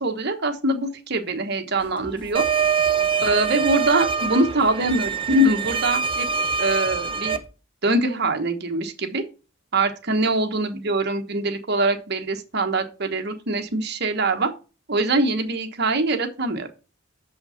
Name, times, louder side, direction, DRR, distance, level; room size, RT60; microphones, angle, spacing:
voice 1, 0.0-2.4 3.2-6.3 6.6-7.4 7.8-9.2 9.7-14.5 14.9-16.7, right 2 dB, 50° right, 6 dB, 1.2 m, -23 dB
Singing, 1.8-7.5, equal, 25° left, 1.4 m, -44 dB
sound 1, 2.3-7.4, right 6 dB, 25° right, 0.7 m, -24 dB
6.6 x 5.6 x 5.6 m, 0.33 s
head